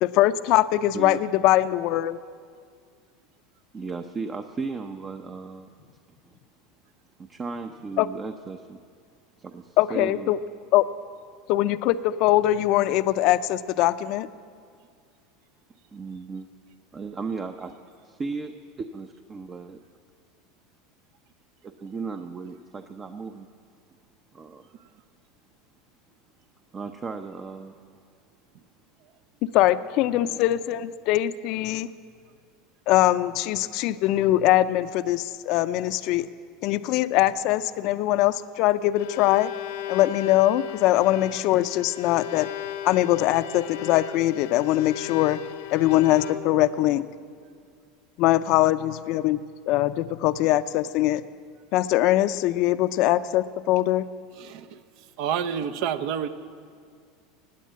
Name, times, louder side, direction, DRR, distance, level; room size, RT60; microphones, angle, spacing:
voice 1, 0.0-2.2 8.0-8.1 9.8-10.4 10.7-10.9 11.5-14.3 29.5-31.9 32.9-36.3 36.6-39.5 39.9-42.5 42.8-45.4 45.7-47.0 48.2-51.2 51.7-54.1, left 14 dB, 55° left, 13 dB, 0.5 m, -22 dB
voice 2, 3.7-5.7 6.2-6.4 7.2-8.8 9.4-10.4 15.9-16.5 16.9-17.7 18.0-19.8 21.8-23.5 24.3-24.6 26.7-27.8 30.2-30.4, right 4 dB, 25° right, 7 dB, 0.6 m, -35 dB
Bowed string instrument, 38.8-46.7, left 12 dB, 80° left, 0.9 m, -36 dB
voice 3, 55.2-56.3, right 8 dB, 65° right, 12 dB, 0.8 m, -28 dB
17.0 x 9.4 x 7.5 m, 2.1 s
supercardioid pair, 115°, 0 cm